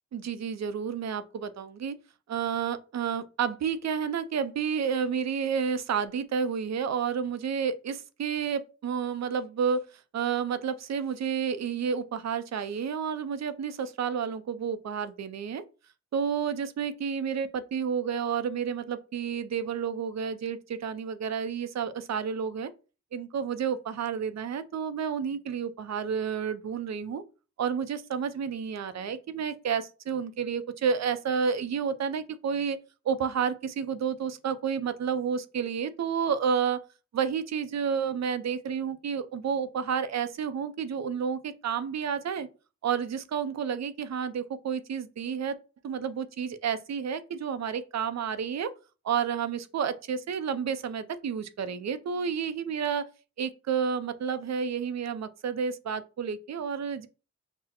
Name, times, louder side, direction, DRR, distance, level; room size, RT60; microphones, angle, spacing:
voice 1, 0.1-1.9 2.3-9.8 10.1-15.6 16.1-22.7 23.1-27.2 27.6-32.8 33.1-36.8 37.1-42.5 42.8-45.5 45.8-48.7 49.0-53.0 53.4-57.1, right 7 dB, 65° right, 0.5 m, -30 dB
5.9 x 2.1 x 2.8 m
wide cardioid pair, 95°, 29 cm